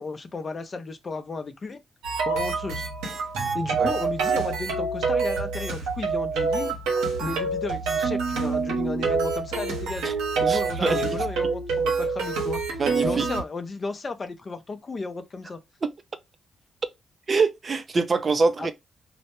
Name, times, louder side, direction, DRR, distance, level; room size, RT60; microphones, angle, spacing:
voice 1, 0.0-1.8 2.3-2.9 3.5-6.8 7.2-10.1 10.4-12.6 13.0-15.6 18.6-18.7, left 3 dB, 40° left, 0.4 m, -34 dB
sound 1, 2.0-13.4, right 4 dB, 90° right, 0.7 m, -26 dB
voice 2, 10.5-11.2 12.8-13.3 17.3-18.7, right 4 dB, 45° right, 0.4 m, -24 dB
2.1 x 2.0 x 2.9 m
supercardioid pair, 55°, 0 cm